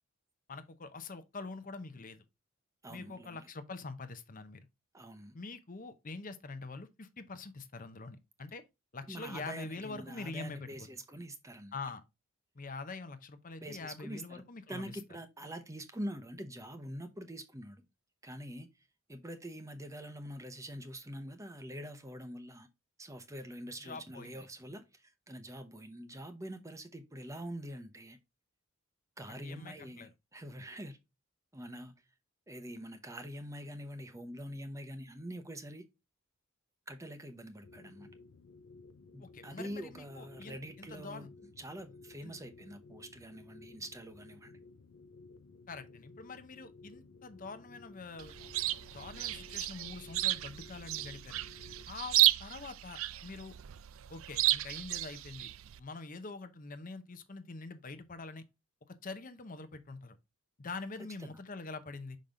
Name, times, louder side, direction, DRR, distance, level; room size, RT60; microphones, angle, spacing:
voice 1, 0.5-2.2 2.9-4.6 5.3-8.6 8.9-10.7 11.7-12.0 12.5-15.0 23.8-24.5 29.3-30.1 39.2-41.3 42.2-42.3 45.7-48.3 48.9-51.4 51.9-53.6 54.1-55.5 55.8-58.4 58.9-60.2 60.6-62.2, left 3 dB, 40° left, 0.7 m, -45 dB
voice 2, 2.8-3.4 4.9-5.3 9.1-11.7 13.6-14.4 14.7-17.8 18.2-18.7 19.1-22.7 23.0-28.2 29.2-31.0 31.5-32.0 32.5-35.8 36.9-38.1 39.1-41.3 41.6-44.5 61.2-61.3, equal, 15° right, 0.8 m, -45 dB
sound 1, 37.6-51.8, left 3 dB, 75° left, 0.6 m, -56 dB
Chirp tweet, 48.2-55.8, right 16 dB, 70° right, 0.4 m, -33 dB
5.8 x 5.2 x 3.7 m
head